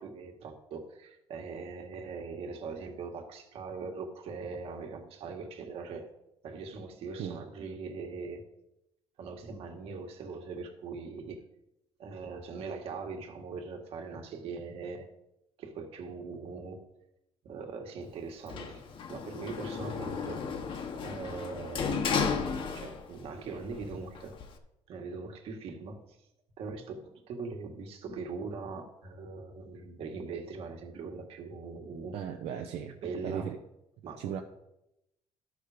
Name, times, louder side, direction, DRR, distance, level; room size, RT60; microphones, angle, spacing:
voice 1, 0.0-6.1 6.4-8.4 9.2-11.4 12.0-15.1 15.6-16.8 17.4-18.8 19.1-20.4 20.8-22.0 22.7-24.3 24.9-26.0 26.6-32.2 33.0-33.5 34.0-34.2, right 4 dB, 65° right, 3 dB, 1.8 m, -41 dB
Sliding door, 18.5-23.3 23.6-24.6, left 5 dB, 55° left, 1.2 m, -34 dB
voice 2, 32.1-33.6 34.2-34.4, right 9 dB, 85° right, 2 dB, 0.9 m, -37 dB
12.0 x 6.4 x 5.1 m, 0.87 s
cardioid pair, 135°, 11 cm